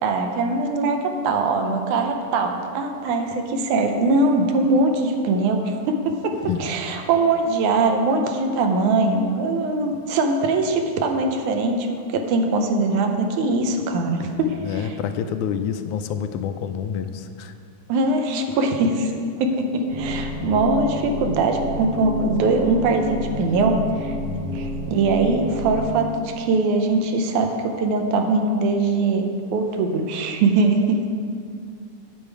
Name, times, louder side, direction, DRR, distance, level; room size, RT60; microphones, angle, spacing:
voice 1, 0.0-14.9 17.9-19.1 19.4-24.2 24.5-29.2 29.5-31.2, right 3 dB, 90° right, 4 dB, 2.2 m, -22 dB
voice 2, 14.6-17.5 20.4-20.6 24.2-24.7, left 8 dB, 85° left, 8 dB, 2.0 m, -28 dB
sound 1, 19.9-25.9, right 1 dB, 65° right, 1.9 m, -30 dB
8.7 x 8.2 x 4.7 m, 2.3 s
omnidirectional pair, 3.5 m